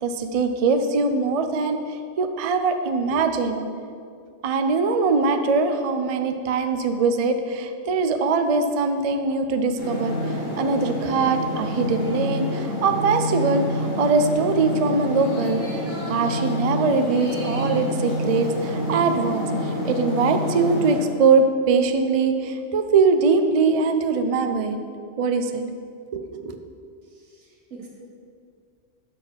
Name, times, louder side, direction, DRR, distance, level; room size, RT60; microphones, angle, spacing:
voice 1, 0.0-3.6 4.4-15.6 16.1-24.8 25.2-25.6 26.1-26.6, right 4 dB, 50° right, 7 dB, 0.4 m, -22 dB
sound 1, 9.8-21.0, left 1 dB, 55° left, 2.3 m, -27 dB
voice 2, 27.1-27.9, right 4 dB, 85° right, -2 dB, 1.8 m, -45 dB
6.7 x 6.2 x 6.3 m, 2.3 s
omnidirectional pair, 1.2 m